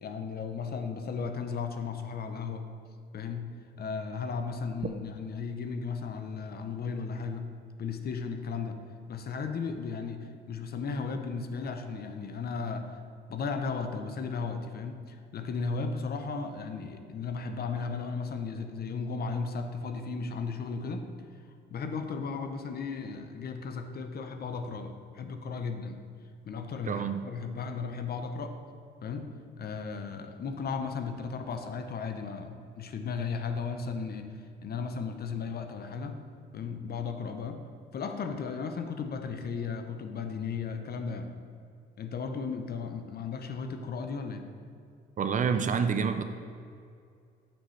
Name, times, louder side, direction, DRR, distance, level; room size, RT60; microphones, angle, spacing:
voice 1, 0.0-2.7 3.1-3.5 3.8-7.5 7.8-8.8 9.1-13.0 13.3-21.1 21.7-26.0 26.4-28.6 29.0-29.3 29.6-34.3 34.6-36.2 36.5-37.6 37.9-41.3 42.0-44.5, left 5 dB, 50° left, 6 dB, 0.7 m, -35 dB
voice 2, 26.9-27.2 45.2-46.2, right 6 dB, 40° right, 8 dB, 0.4 m, -27 dB
7.1 x 6.2 x 3.2 m, 2.3 s
cardioid pair, 90°, 20 cm